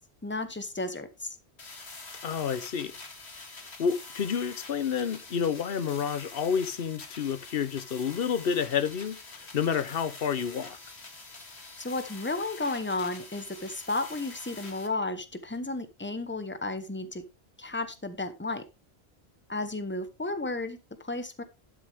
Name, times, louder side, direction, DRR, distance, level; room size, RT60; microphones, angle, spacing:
voice 1, 0.2-1.3 11.8-17.2 17.6-18.6 19.5-21.4, left 2 dB, 10° left, 1.1 m, -33 dB
sound 1, 1.6-14.9, left 3 dB, 80° left, 2.1 m, -46 dB
voice 2, 2.2-3.0 3.8-9.2 9.5-10.8, left 7 dB, 60° left, 1.0 m, -29 dB
12.0 x 6.9 x 3.5 m
omnidirectional pair, 1.1 m